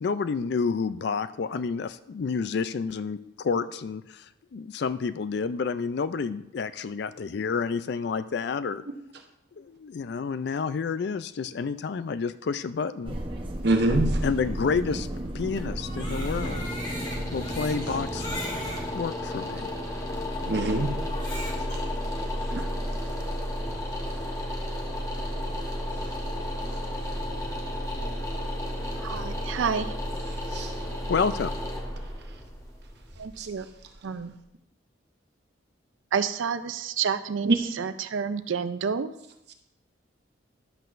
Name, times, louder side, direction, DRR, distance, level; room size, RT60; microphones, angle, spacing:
voice 1, 0.0-4.3 4.5-8.8 9.6-13.2 14.2-15.1 15.3-16.7 17.3-18.3 18.9-19.7 31.1-31.5, left 5 dB, 55° left, 14 dB, 0.3 m, -29 dB
sound 1, 13.0-18.9, right 1 dB, 25° right, 0.8 m, -33 dB
voice 2, 13.6-14.2 20.5-20.9 22.5-22.7 30.5-30.7 33.4-33.5, right 2 dB, 55° right, 4 dB, 0.9 m, -25 dB
sound 2, 15.2-34.1, left 1 dB, 15° left, 1.0 m, -33 dB
Crying sobbing, 15.7-18.8 19.6-19.7 21.0-21.8, left 1 dB, 35° left, 2.1 m, -39 dB
voice 3, 29.0-29.9 33.2-33.7 34.0-34.3 36.1-39.1, right 6 dB, 75° right, 12 dB, 0.4 m, -29 dB
11.0 x 7.7 x 2.5 m, 0.83 s
head